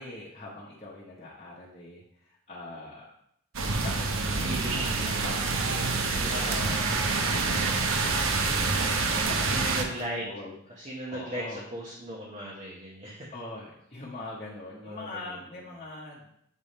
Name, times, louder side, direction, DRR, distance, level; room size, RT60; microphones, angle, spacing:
voice 1, 0.0-3.0 3.8-6.6 6.8-7.0 7.3-11.6 13.3-16.3, left 2 dB, 30° left, -7 dB, 1.0 m, -43 dB
sound 1, 3.5-9.8, right 3 dB, 85° right, 0.8 m, -27 dB
voice 2, 4.4-5.3 6.3-7.2 9.5-10.2 10.8-13.3 14.7-15.4, right 1 dB, 35° right, -5 dB, 1.0 m, -37 dB
7.3 x 3.5 x 4.2 m, 0.73 s
head